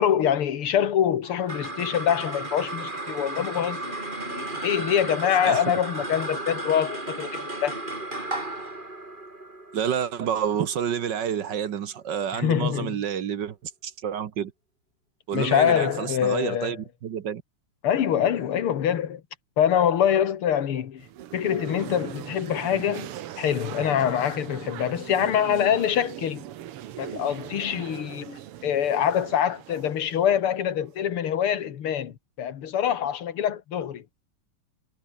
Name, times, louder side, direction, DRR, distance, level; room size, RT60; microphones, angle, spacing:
voice 1, 0.0-3.9 4.3-7.8 12.3-13.0 15.3-16.8 17.8-19.2 19.6-21.1 21.3-23.1 23.4-26.4 27.0-34.0, left 9 dB, 75° left, 2.4 m, -25 dB
sound 1, 1.2-11.8, right 2 dB, 20° right, 3.7 m, -34 dB
voice 2, 9.7-13.6 13.8-14.5 15.3-16.8 17.0-17.4, right 8 dB, 60° right, 1.6 m, -28 dB
sound 2, 21.0-31.0, right 12 dB, 85° right, 2.0 m, -40 dB
omnidirectional pair, 2.4 m